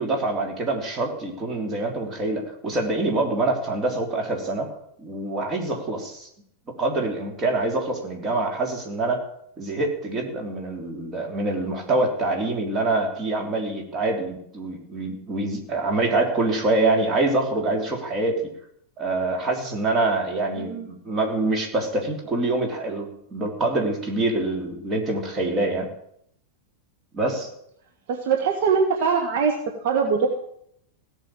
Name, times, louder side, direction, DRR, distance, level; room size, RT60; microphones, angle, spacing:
voice 1, 0.0-4.7 5.0-6.3 6.8-9.3 9.6-18.5 19.0-25.9 27.1-27.5, right 2 dB, 25° right, 2 dB, 3.5 m, -25 dB
voice 2, 20.6-20.9 28.1-29.6 29.8-30.3, right 5 dB, 50° right, 3 dB, 1.7 m, -22 dB
17.0 x 6.7 x 8.9 m, 0.71 s
figure-of-eight pair, 90°, 0 cm